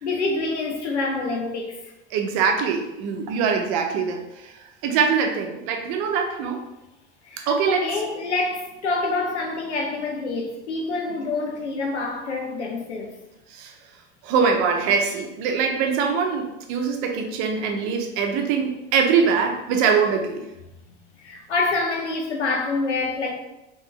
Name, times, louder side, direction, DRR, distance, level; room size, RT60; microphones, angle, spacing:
voice 1, 0.0-1.9 7.2-13.1 20.9-23.3, left 3 dB, 85° left, 0.8 m, -27 dB
voice 2, 2.1-4.5 4.8-6.6 7.4-7.8 13.5-13.7 14.2-20.4, right 6 dB, 55° right, 0.8 m, -23 dB
3.3 x 3.1 x 3.2 m
hypercardioid pair, 75°, 34 cm